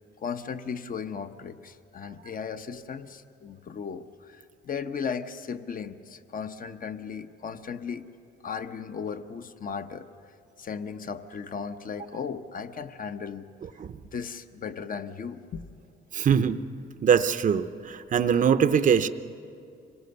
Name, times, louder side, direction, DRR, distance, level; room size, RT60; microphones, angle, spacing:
voice 1, 0.2-8.1 8.4-10.1 10.6-13.5 14.0-15.6, left 6 dB, 45° left, 10 dB, 0.9 m, -36 dB
voice 2, 16.1-16.6 17.0-19.1, right 7 dB, 40° right, 10 dB, 0.7 m, -22 dB
26.0 x 18.5 x 6.8 m, 2.5 s
cardioid pair, 90°, 20 cm